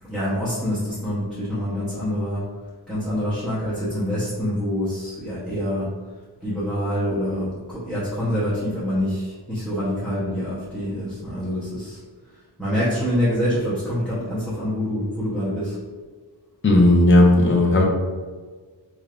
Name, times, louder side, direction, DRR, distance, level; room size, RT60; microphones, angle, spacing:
voice 1, 0.0-2.5 2.9-5.9 6.4-12.0 12.3-15.8, equal, ahead, -11 dB, 0.8 m, -26 dB
voice 2, 16.6-17.8, left 1 dB, 25° left, 0 dB, 0.5 m, -14 dB
3.5 x 3.4 x 2.4 m, 1.5 s
wide cardioid pair, 145°, 45 cm